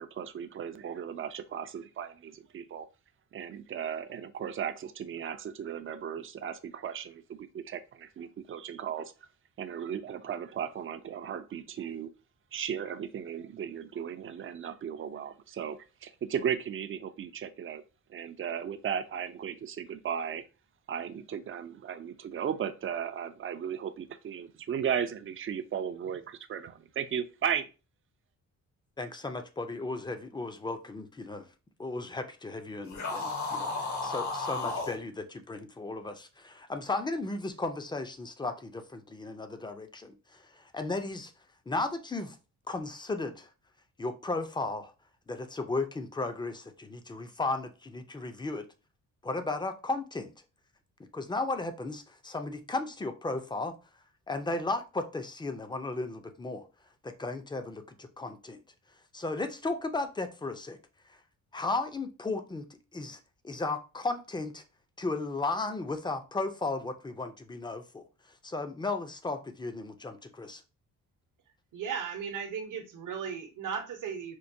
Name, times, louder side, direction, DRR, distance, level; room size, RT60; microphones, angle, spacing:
voice 1, 0.0-2.9 3.3-9.1 9.6-12.1 12.5-17.8 18.1-20.4 20.9-27.7, right 8 dB, 40° right, 0.4 m, -36 dB
voice 2, 29.0-31.5 31.8-41.3 41.7-42.4 42.7-43.5 44.0-44.9 45.3-48.7 49.2-50.3 51.1-53.8 54.3-56.7 57.0-58.6 59.1-60.8 61.1-61.2 61.5-64.6 65.0-68.0 68.4-70.6, left 3 dB, 15° left, 0.5 m, -35 dB
sound 1, 32.9-35.0, left 3 dB, 60° left, 0.9 m, -33 dB
voice 3, 71.7-74.4, right 7 dB, 65° right, 0.9 m, -36 dB
4.5 x 2.2 x 2.6 m
cardioid pair, 100°, 33 cm